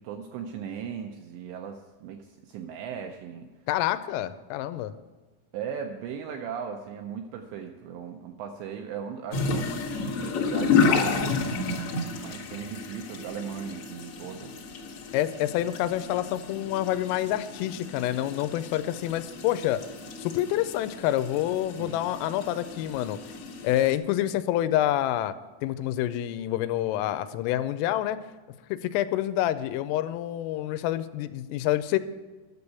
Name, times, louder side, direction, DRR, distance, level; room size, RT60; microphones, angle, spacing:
voice 1, 0.0-3.5 5.5-11.3 12.2-14.5 21.8-22.0, right 7 dB, 85° right, 5 dB, 2.5 m, -38 dB
voice 2, 3.7-4.9 15.1-19.8 20.2-23.2 23.6-25.3 25.6-28.2 28.7-32.0, left 13 dB, 90° left, 13 dB, 3.2 m, -27 dB
sound 1, 9.3-23.9, left 4 dB, 70° left, 1.3 m, -31 dB
11.5 x 7.0 x 8.1 m, 1.3 s
omnidirectional pair, 5.8 m